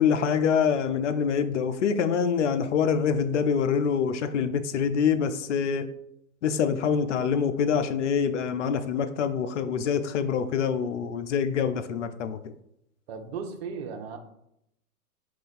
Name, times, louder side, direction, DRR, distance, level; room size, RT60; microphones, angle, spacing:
voice 1, 0.0-5.9 6.4-12.4, left 7 dB, 55° left, 0.5 m, -25 dB
voice 2, 13.1-14.2, right 5 dB, 45° right, 0.7 m, -36 dB
4.4 x 2.4 x 4.1 m
figure-of-eight pair, 115°, 45 cm